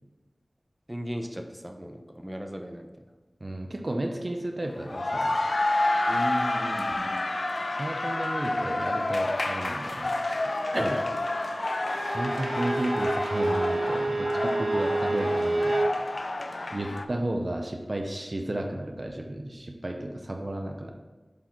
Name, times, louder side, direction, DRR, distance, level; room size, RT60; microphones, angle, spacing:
voice 1, 0.9-2.9 6.1-7.2, equal, 15° right, 5 dB, 0.7 m, -36 dB
voice 2, 3.4-5.3 7.8-10.1 10.7-11.1 12.1-15.8 16.7-20.9, right 1 dB, 45° right, 3 dB, 0.7 m, -33 dB
sound 1, 4.7-17.0, left 2 dB, 65° left, 0.5 m, -29 dB
Bowed string instrument, 11.9-16.0, right 2 dB, 85° right, 0.4 m, -28 dB
8.3 x 4.1 x 4.5 m, 1.2 s
wide cardioid pair, 60°, 0 cm